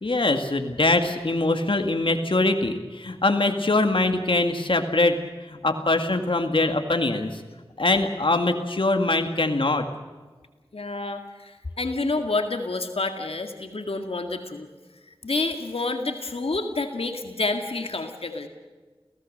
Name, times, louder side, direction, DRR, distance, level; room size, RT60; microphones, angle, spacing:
voice 1, 0.0-5.2 5.5-7.4 7.8-9.9, left 2 dB, 60° left, 5 dB, 2.1 m, -23 dB
voice 2, 10.7-14.7 15.2-18.5, left 3 dB, 75° left, 5 dB, 2.0 m, -29 dB
28.5 x 17.5 x 6.6 m, 1.4 s
wide cardioid pair, 40°, 10 cm